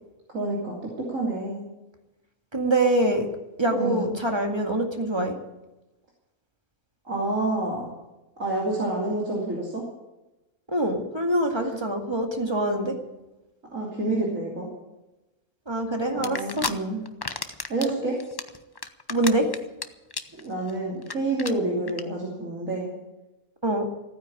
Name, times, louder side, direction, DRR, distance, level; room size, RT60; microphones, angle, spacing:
voice 1, 0.3-1.6 3.7-4.2 7.0-7.9 8.4-9.8 11.5-11.8 13.7-14.7 16.1-17.0 17.7-18.2 20.3-22.9, right 2 dB, 65° right, -3 dB, 3.3 m, -28 dB
voice 2, 2.5-3.3 3.6-5.4 10.7-12.9 15.7-16.7 17.8-18.0 19.1-19.5 23.6-23.9, right 1 dB, 20° right, 3 dB, 2.1 m, -24 dB
sound 1, 16.2-16.7 17.1-17.9 18.2-19.8 20.1-20.4 20.7-20.8 21.0-21.1 21.4-21.5 21.9-22.0, left 3 dB, 25° left, 0.5 m, -31 dB
16.0 x 9.6 x 8.6 m, 1.0 s
omnidirectional pair, 1.5 m